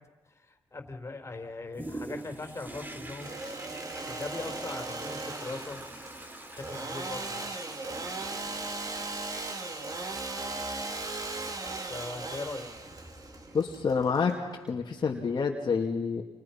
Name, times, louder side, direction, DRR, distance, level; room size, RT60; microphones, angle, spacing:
voice 1, 0.4-3.3 4.0-5.8 6.5-7.5 11.9-12.7, left 3 dB, 25° left, 5 dB, 4.2 m, -40 dB
Toilet flush, 1.7-14.2 14.7-14.8, right 1 dB, 20° right, 3.4 m, -46 dB
Engine / Sawing, 3.0-14.7, right 2 dB, 35° right, 2.9 m, -38 dB
voice 2, 13.5-14.4 14.7-16.2, left 5 dB, 45° left, -1 dB, 2.5 m, -28 dB
29.5 x 28.0 x 5.9 m, 1.2 s
cardioid pair, 100°, 10 cm